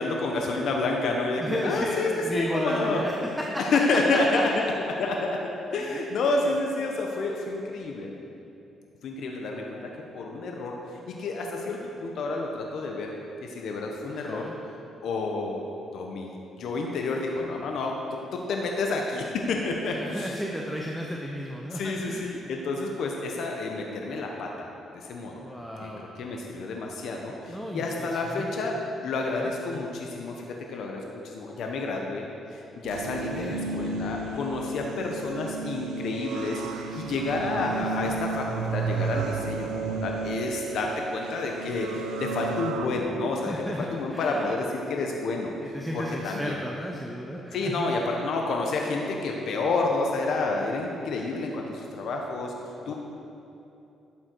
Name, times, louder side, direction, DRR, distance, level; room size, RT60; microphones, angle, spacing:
voice 1, 0.0-3.0 3.6-4.6 5.0-8.1 9.0-10.7 11.1-13.1 13.5-14.5 15.0-15.6 15.9-17.9 18.3-20.3 21.7-24.7 24.9-25.4 25.8-25.9 26.2-28.7 29.0-43.5 43.8-45.5 45.9-46.6 47.5-52.5 52.9-53.0, left 3 dB, 70° left, 1 dB, 1.0 m, -29 dB
voice 2, 1.4-3.1 3.5-3.6 4.1-4.4 5.7-6.0 14.1-14.6 19.9-22.3 25.4-26.0 27.5-28.5 29.3-29.5 33.1-33.5 36.9-37.1 37.5-38.2 43.4-44.5 45.6-47.9 52.8-52.9, equal, 5° right, -1 dB, 0.9 m, -34 dB
sound 1, 32.8-42.9, right 4 dB, 90° right, 0.7 m, -33 dB
11.5 x 7.6 x 4.6 m, 2.8 s
cardioid pair, 90°, 0 cm